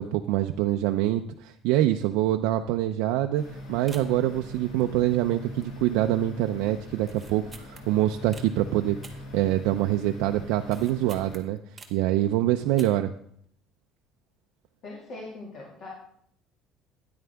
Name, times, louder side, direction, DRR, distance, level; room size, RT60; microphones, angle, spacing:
voice 1, 0.0-3.4 3.7-9.0 9.3-11.6 11.9-13.1, right 13 dB, 85° right, 5 dB, 0.5 m, -25 dB
sound 1, 3.3-11.4, left 1 dB, 70° left, 2.4 m, -42 dB
sound 2, 3.9-4.3 4.8-5.3 5.6-6.0 6.3-6.4 7.0-8.5 9.0-9.9 10.2-12.1 12.6-13.2 13.4-13.5, right 4 dB, 15° right, 1.0 m, -49 dB
voice 2, 14.8-15.9, left 2 dB, 40° left, -3 dB, 2.0 m, -41 dB
13.0 x 9.7 x 3.5 m, 0.67 s
cardioid pair, 175°, 0 cm